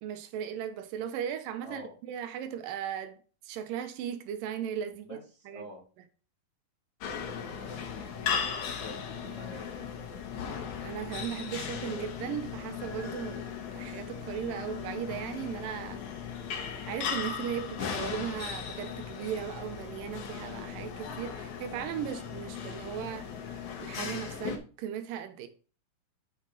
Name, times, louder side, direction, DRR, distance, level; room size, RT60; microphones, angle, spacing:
voice 1, 0.0-5.2 5.5-5.7 10.8-16.2 16.9-25.5, right 9 dB, 85° right, 2.4 m, -37 dB
voice 2, 1.6-1.9 5.0-5.8 7.2-8.5 8.8-9.7, left 1 dB, 40° left, 0.8 m, -47 dB
sound 1, 7.0-24.6, left 7 dB, 65° left, 2.3 m, -37 dB
7.4 x 6.1 x 3.9 m
omnidirectional pair, 4.0 m